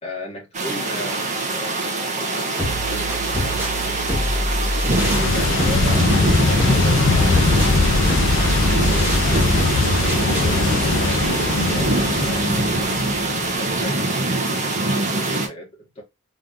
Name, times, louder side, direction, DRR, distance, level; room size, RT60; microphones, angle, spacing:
voice 1, 0.0-4.4 4.9-7.9 10.3-13.0 13.6-14.2 14.6-16.0, equal, 30° left, 2.0 m, -36 dB
sound 1, 0.5-15.5, right 2 dB, 35° right, 1.0 m, -23 dB
sound 2, 2.6-10.6, equal, 10° right, 1.4 m, -25 dB
sound 3, 5.0-13.6, left 3 dB, 55° left, 0.6 m, -21 dB
3.8 x 3.4 x 2.7 m
head